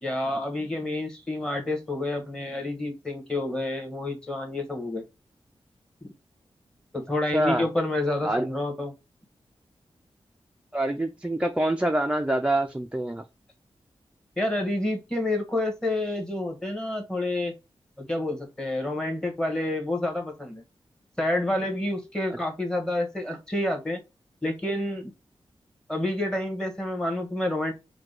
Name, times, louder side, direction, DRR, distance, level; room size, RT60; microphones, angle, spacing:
voice 1, 0.0-5.0 6.9-8.9 14.4-17.5 18.0-20.6 21.2-24.0 24.4-25.1 25.9-27.7, left 1 dB, 5° left, 1.1 m, -28 dB
voice 2, 7.3-7.7 8.2-8.5 10.7-13.2, right 1 dB, 10° right, 0.3 m, -25 dB
4.7 x 2.2 x 3.7 m
wide cardioid pair, 125°, 10 cm